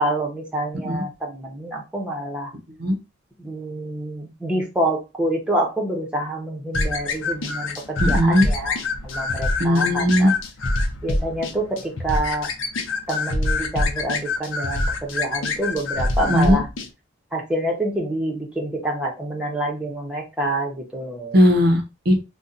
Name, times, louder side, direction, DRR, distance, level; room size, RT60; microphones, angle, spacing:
voice 1, 0.0-2.5 3.4-10.3 11.0-12.5 13.1-16.7 17.3-21.4, right 1 dB, 5° right, -2 dB, 0.7 m, -27 dB
sound 1, 6.7-16.9, left 2 dB, 85° left, 0.6 m, -25 dB
voice 2, 8.0-8.5 9.6-10.3 16.3-16.6 21.3-22.2, equal, 50° right, 4 dB, 0.6 m, -18 dB
2.6 x 2.2 x 3.7 m, 0.26 s
head